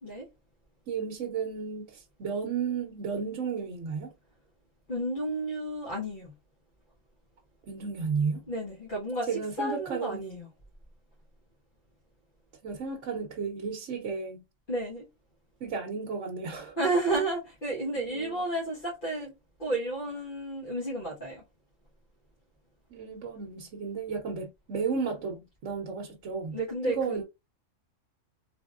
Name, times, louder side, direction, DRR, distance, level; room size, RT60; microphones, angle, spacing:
voice 1, 0.9-4.1 7.7-8.4 9.3-10.2 12.6-14.4 15.6-16.8 18.0-18.4 22.9-27.2, right 5 dB, 75° right, 1.1 m, -33 dB
voice 2, 4.9-6.3 8.5-10.5 14.7-15.1 16.8-19.3 19.6-21.4 26.5-27.2, right 2 dB, 40° left, 1.4 m, -31 dB
3.5 x 3.5 x 2.4 m
omnidirectional pair, 1.3 m